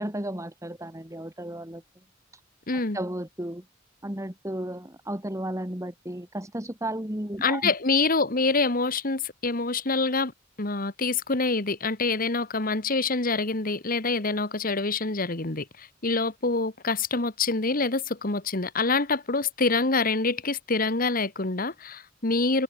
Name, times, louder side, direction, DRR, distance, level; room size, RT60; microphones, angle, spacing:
voice 1, 0.0-1.8 2.9-3.6 4.0-7.7, right 1 dB, 15° right, 2.5 m, -33 dB
voice 2, 2.7-3.0 7.4-10.3 10.6-22.6, left 3 dB, 45° left, 1.8 m, -26 dB
head